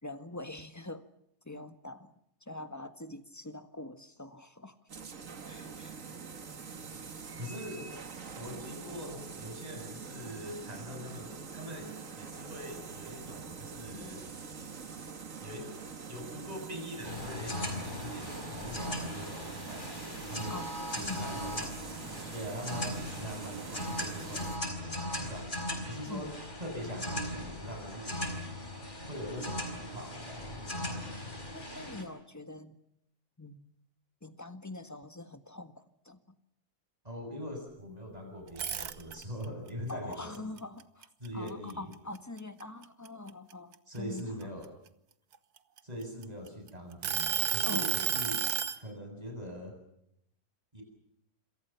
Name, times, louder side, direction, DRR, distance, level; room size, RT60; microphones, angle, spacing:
voice 1, 0.0-1.0 1.4-2.1 2.4-4.8 5.4-6.0 7.8-8.1 8.4-8.6 20.5-22.1 25.7-26.4 31.5-32.8 33.4-33.7 34.2-36.4 39.9-44.5 47.6-48.2, left 2 dB, 10° left, 10 dB, 1.5 m, -44 dB
sound 1, 4.9-24.6, right 5 dB, 55° right, 2.0 m, -44 dB
voice 2, 7.4-7.9 8.3-14.2 15.4-15.7 16.1-20.6 20.9-21.7 22.3-25.6 25.9-26.3 26.6-28.2 29.1-30.8 37.0-40.5 41.2-41.9 43.9-44.7 45.8-48.5 48.8-49.7 50.7-50.8, equal, 25° right, 3 dB, 8.2 m, -42 dB
sound 2, 17.0-32.0, left 1 dB, 30° left, 4.7 m, -38 dB
sound 3, 38.5-39.4 39.9-41.7 42.1-42.4 42.8-44.6 45.3-46.5 47.0-48.8, right 8 dB, 75° right, 1.7 m, -31 dB
27.5 x 26.5 x 5.8 m, 0.77 s
omnidirectional pair, 1.7 m